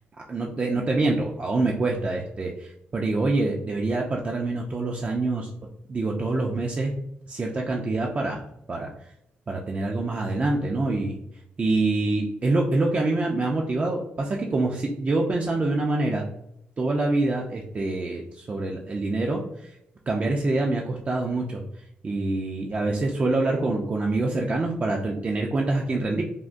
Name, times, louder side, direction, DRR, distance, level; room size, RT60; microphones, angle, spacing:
voice 1, 0.3-5.5 5.9-6.9 7.3-8.4 8.7-8.9 9.5-11.2 11.6-16.3 16.8-19.7 20.1-21.6 22.0-26.2, right 2 dB, 35° right, 0 dB, 0.4 m, -25 dB
3.5 x 2.1 x 2.5 m, 0.75 s
cardioid pair, 80°, 4 cm